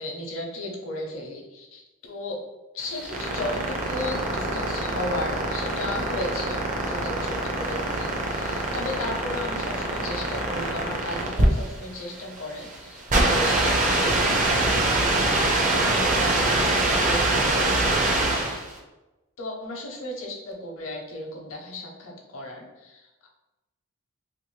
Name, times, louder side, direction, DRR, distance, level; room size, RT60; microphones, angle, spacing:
voice 1, 0.0-2.4 2.7-14.2 15.3-18.6 19.4-23.3, left 1 dB, 65° left, 0 dB, 0.7 m, -35 dB
sound 1, 2.8-18.7, right 2 dB, 35° right, 0.5 m, -24 dB
2.9 x 2.5 x 3.1 m, 1.0 s
head